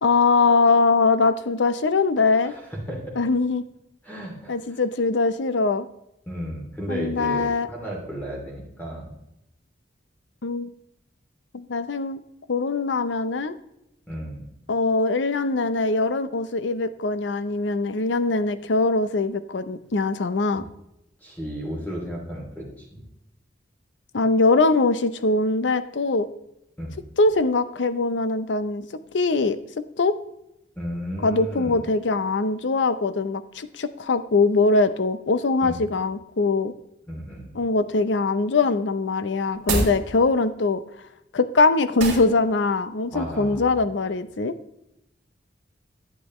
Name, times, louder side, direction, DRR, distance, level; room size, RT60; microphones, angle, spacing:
voice 1, 0.0-2.5 3.2-3.6 4.5-5.9 6.9-7.7 10.4-10.7 11.5-12.2 12.5-13.5 14.7-20.6 24.1-26.3 27.2-28.9 29.1-29.6 30.0-30.2 31.2-36.7 37.5-40.8 41.3-44.5, left 3 dB, 80° left, 12 dB, 0.6 m, -22 dB
voice 2, 2.4-3.0 4.0-4.6 6.3-9.2 14.1-14.4 21.2-23.0 26.8-27.0 30.8-31.8 35.6-35.8 37.1-37.5 43.1-43.7, equal, 10° left, -3 dB, 2.7 m, -34 dB
sound 1, 39.5-40.0 42.0-42.3, right 2 dB, 65° right, 2.4 m, -25 dB
11.0 x 8.4 x 3.1 m, 0.84 s
head